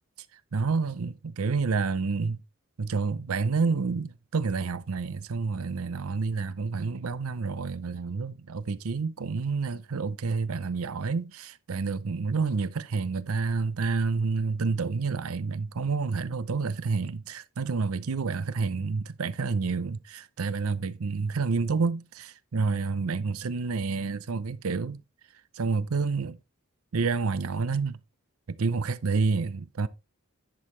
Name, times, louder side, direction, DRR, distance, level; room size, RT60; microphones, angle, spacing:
voice 1, 0.5-2.4 2.8-25.0 25.5-26.4 26.9-28.0 28.5-29.9, right 4 dB, 80° right, 0.6 m, -29 dB
10.5 x 6.2 x 3.2 m
head